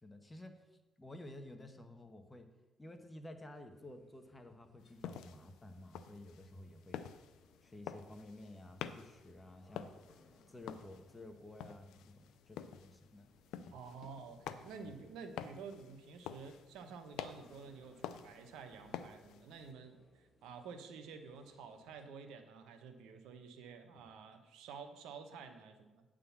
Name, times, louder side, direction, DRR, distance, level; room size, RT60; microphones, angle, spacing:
voice 1, 0.0-0.7 1.0-2.5 2.8-7.0 7.6-9.9 10.5-13.3 13.5-13.8 14.8-15.1, left 1 dB, 20° left, 6 dB, 1.0 m, -53 dB
sound 1, 3.7-22.0, left 2 dB, 40° left, 1.5 m, -69 dB
sound 2, 4.8-19.7, left 9 dB, 90° left, 0.4 m, -50 dB
voice 2, 13.7-26.0, right 5 dB, 90° right, 7 dB, 0.9 m, -51 dB
9.3 x 3.8 x 7.1 m, 1.1 s
cardioid pair, 90°, 0 cm